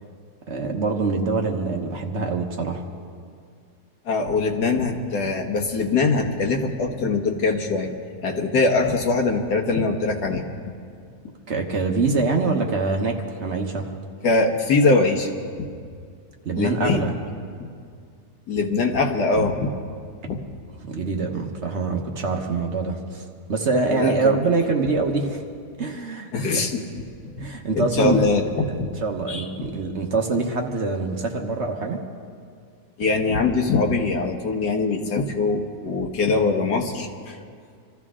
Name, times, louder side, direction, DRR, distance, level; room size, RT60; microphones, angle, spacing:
voice 1, 0.5-2.8 11.5-13.9 16.4-17.1 20.8-25.4 25.8-26.6 27.4-28.3 29.0-32.0, right 3 dB, 50° right, 2 dB, 1.3 m, -24 dB
voice 2, 4.1-7.9 8.2-10.4 14.2-15.3 15.6-15.7 16.5-17.1 17.6-17.7 18.5-19.7 20.2-20.4 23.9-24.3 26.3-27.0 27.3-27.4 27.7-28.9 29.3-29.7 33.0-37.4, left 3 dB, 90° left, 2 dB, 1.9 m, -22 dB
25.5 x 14.0 x 3.7 m, 2.2 s
omnidirectional pair, 1.7 m